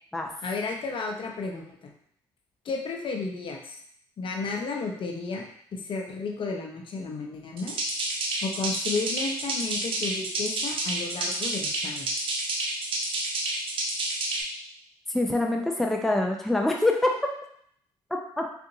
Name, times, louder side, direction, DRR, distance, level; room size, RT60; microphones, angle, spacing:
voice 1, 0.4-1.9 2.6-3.8 4.2-5.5 5.7-7.8 8.4-12.2, left 4 dB, 55° left, 1 dB, 0.7 m, -33 dB
sound 1, 7.6-14.4, right 2 dB, 55° right, 0.7 m, -29 dB
voice 2, 15.1-17.1 18.4-18.5, left 2 dB, 5° left, 1 dB, 0.5 m, -25 dB
3.8 x 2.5 x 2.6 m, 0.65 s
supercardioid pair, 60°, 11 cm